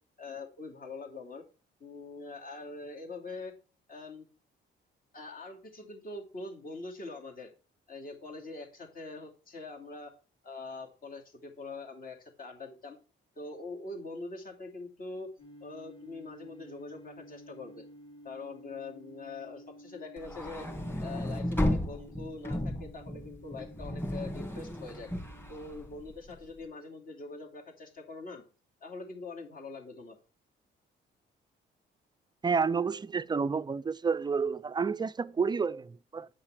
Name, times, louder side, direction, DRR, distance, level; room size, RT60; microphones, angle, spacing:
voice 1, 0.2-1.4 1.8-3.5 3.9-4.3 5.1-7.5 7.9-10.1 10.4-13.0 13.4-15.3 15.6-17.9 18.2-20.7 21.0-25.1 25.5-28.4 28.8-30.2, left 3 dB, 45° left, 2.6 m, -43 dB
sound 1, 15.4-26.0, equal, 30° left, 3.2 m, -53 dB
sound 2, 20.2-26.5, left 1 dB, 10° left, 2.5 m, -34 dB
voice 2, 32.4-36.3, right 5 dB, 20° right, 0.4 m, -30 dB
8.9 x 5.6 x 4.8 m
cardioid pair, 90°, 20 cm